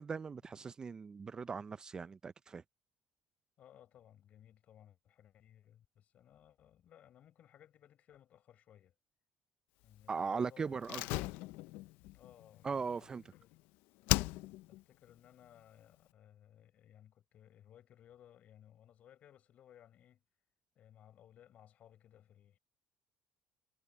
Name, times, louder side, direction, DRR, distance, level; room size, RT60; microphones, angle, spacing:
voice 1, 0.0-2.6 10.1-11.0 12.6-13.2, right 5 dB, 25° right, 0.4 m, -39 dB
voice 2, 3.6-8.9 9.8-11.0 12.1-13.6 14.7-20.2 20.8-22.6, left 10 dB, 50° left, 4.2 m, -61 dB
Slam, 10.8-13.6 14.1-14.8 15.1-15.2, left 20 dB, 85° left, 0.4 m, -37 dB
cardioid pair, 135°, 3 cm